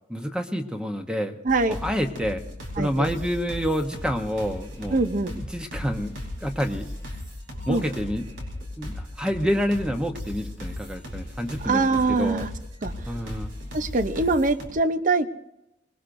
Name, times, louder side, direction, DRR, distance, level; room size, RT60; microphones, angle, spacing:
voice 1, 0.1-1.4 1.7-2.4 2.8-5.0 5.3-6.9 7.7-8.2 8.8-12.5 13.1-13.5, equal, 5° right, 5 dB, 0.9 m, -28 dB
voice 2, 1.4-1.8 2.8-3.1 4.9-5.3 7.7-7.8 11.6-12.5 12.8-12.9 13.7-15.3, right 3 dB, 45° right, 11 dB, 0.7 m, -23 dB
sound 1, 1.5-14.7, left 1 dB, 90° right, 4.3 m, -37 dB
25.0 x 20.5 x 2.6 m, 0.85 s
head